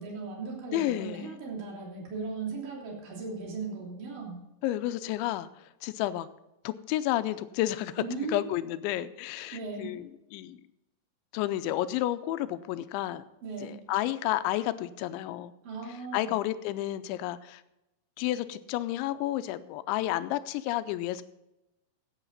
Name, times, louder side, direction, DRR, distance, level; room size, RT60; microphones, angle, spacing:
voice 1, 0.0-4.4 8.0-8.4 9.5-10.0 13.4-13.8 15.6-16.3, right 4 dB, 50° right, -2 dB, 4.3 m, -37 dB
voice 2, 0.7-1.3 4.6-6.3 6.6-8.0 8.3-10.6 11.3-13.2 13.6-15.5 16.1-17.6 18.2-21.2, left 14 dB, 85° left, 12 dB, 2.8 m, -31 dB
16.0 x 9.1 x 4.0 m, 0.91 s
omnidirectional pair, 5.5 m